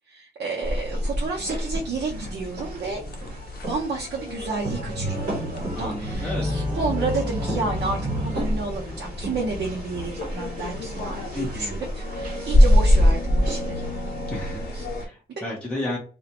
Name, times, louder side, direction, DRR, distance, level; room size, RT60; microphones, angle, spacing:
voice 1, 0.1-3.0 3.6-13.9 14.7-14.9, right 3 dB, 75° right, -1 dB, 0.6 m, -31 dB
sound 1, 0.6-15.0, equal, 55° right, 1.1 m, -26 dB
sound 2, 1.6-15.1, left 1 dB, 65° left, 0.5 m, -37 dB
voice 2, 5.8-6.6 11.3-11.8 14.3-16.0, left 1 dB, 5° left, -3 dB, 0.6 m, -33 dB
sound 3, 6.1-9.9, left 2 dB, 20° right, 1.4 m, -31 dB
2.4 x 2.1 x 2.7 m, 0.38 s
wide cardioid pair, 165°, 17 cm